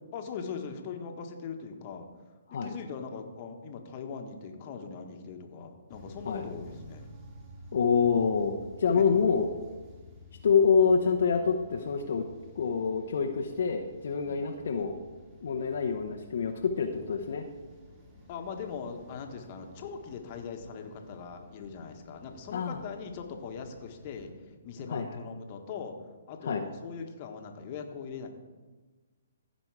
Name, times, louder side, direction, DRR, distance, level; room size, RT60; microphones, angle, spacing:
voice 1, 0.1-2.1 2.5-7.1 8.9-9.3 14.2-14.4 18.3-24.3 24.6-26.0 26.3-28.3, left 6 dB, 40° left, 4 dB, 1.4 m, -40 dB
sound 1, 5.9-24.3, left 1 dB, 20° right, 2.6 m, -53 dB
voice 2, 7.7-9.5 10.4-12.2 12.6-14.9 15.4-17.4 22.5-22.8 24.9-25.2 26.5-26.6, left 6 dB, 65° left, 2 dB, 0.9 m, -26 dB
15.5 x 5.2 x 4.8 m, 1.3 s
hypercardioid pair, 135°, 0 cm